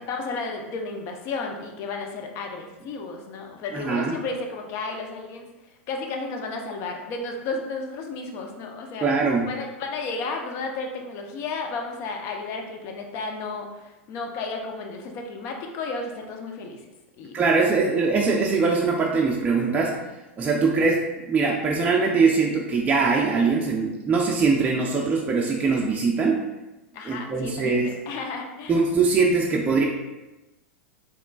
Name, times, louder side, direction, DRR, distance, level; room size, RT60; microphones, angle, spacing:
voice 1, 0.1-5.5 5.9-9.1 9.5-16.8 17.2-17.4 26.9-28.8, left 3 dB, 45° left, 3 dB, 0.6 m, -33 dB
voice 2, 3.7-4.1 9.0-9.5 17.3-19.9 20.4-21.0 21.3-26.4 27.0-27.9 28.7-29.8, right 4 dB, 20° right, -1 dB, 0.5 m, -22 dB
4.4 x 3.0 x 2.3 m, 1.0 s
hypercardioid pair, 95°, 7 cm